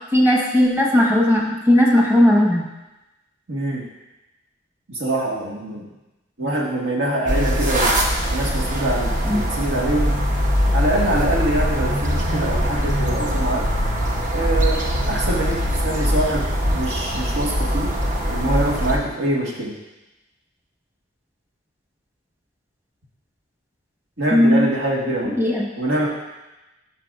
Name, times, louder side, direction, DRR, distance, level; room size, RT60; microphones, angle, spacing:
voice 1, 0.1-2.6 9.2-9.4 24.3-24.7 25.2-25.7, left 1 dB, 10° right, -2 dB, 1.2 m, -17 dB
voice 2, 3.5-3.8 4.9-5.9 6.4-8.0 8.3-10.2 10.7-13.7 14.3-16.5 16.7-17.9 18.3-19.7 24.2-25.3 25.8-26.1, right 1 dB, 80° right, -3 dB, 1.6 m, -24 dB
sound 1, 7.2-19.0, equal, 40° right, 0.9 m, -22 dB
11.5 x 5.4 x 2.5 m, 1.0 s
head